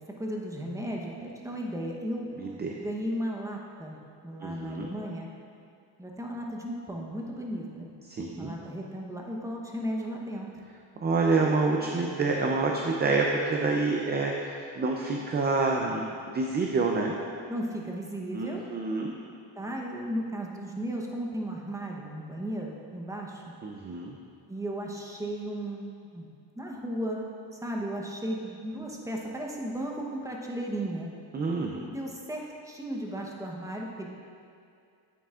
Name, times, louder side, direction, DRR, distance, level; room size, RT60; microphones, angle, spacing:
voice 1, 0.2-2.3 2.8-4.0 4.2-5.3 6.0-7.9 8.4-10.5 13.7-14.1 17.5-18.7 19.6-23.4 24.5-25.9 26.1-26.2 26.6-27.2 27.5-31.1 31.9-34.1, equal, 5° right, -1 dB, 0.9 m, -35 dB
voice 2, 2.4-2.8 4.4-4.9 8.0-8.6 11.0-17.2 18.3-19.1 23.6-24.2 31.3-31.9, right 3 dB, 25° right, 1 dB, 0.5 m, -28 dB
9.3 x 9.1 x 2.5 m, 2.4 s
cardioid pair, 120°, 43 cm